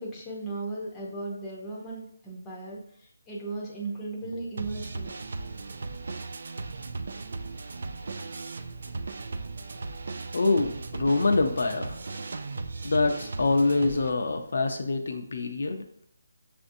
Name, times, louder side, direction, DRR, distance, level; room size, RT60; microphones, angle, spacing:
voice 1, 0.0-2.8 3.3-5.1, right 2 dB, 10° left, -5 dB, 0.7 m, -36 dB
sound 1, 4.2-14.1, right 3 dB, 60° right, 0.3 m, -37 dB
voice 2, 10.3-12.0 12.8-15.8, left 3 dB, 65° left, 5 dB, 0.5 m, -25 dB
6.8 x 2.6 x 2.6 m, 0.68 s
hypercardioid pair, 165°, 0 cm